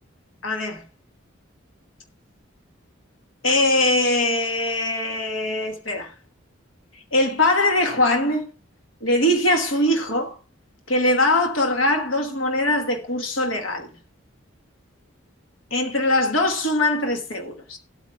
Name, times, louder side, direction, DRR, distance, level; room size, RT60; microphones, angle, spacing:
voice 1, 0.4-0.8 3.4-6.1 7.1-8.5 9.0-10.4 10.9-13.9 15.7-17.8, left 1 dB, 80° left, 1.3 m, -21 dB
17.5 x 8.4 x 2.3 m
head